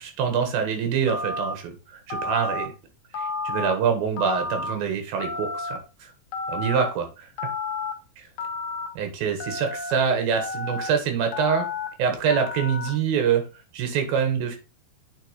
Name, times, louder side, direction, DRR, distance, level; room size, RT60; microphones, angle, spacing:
voice 1, 0.0-2.7 3.2-6.1 6.5-7.3 8.2-8.3 9.0-11.7 12.0-13.4 13.7-14.6, right 7 dB, 80° right, 5 dB, 3.4 m, -25 dB
Telephone, 1.1-1.5 2.1-2.6 3.1-3.7 4.2-4.7 5.2-5.8 6.3-6.9 7.4-7.9 8.4-8.9 9.4-9.9 10.3-10.9 11.3-11.9 12.3-12.9, left 3 dB, 65° left, 1.6 m, -31 dB
9.4 x 4.5 x 3.1 m, 0.30 s
omnidirectional pair, 4.2 m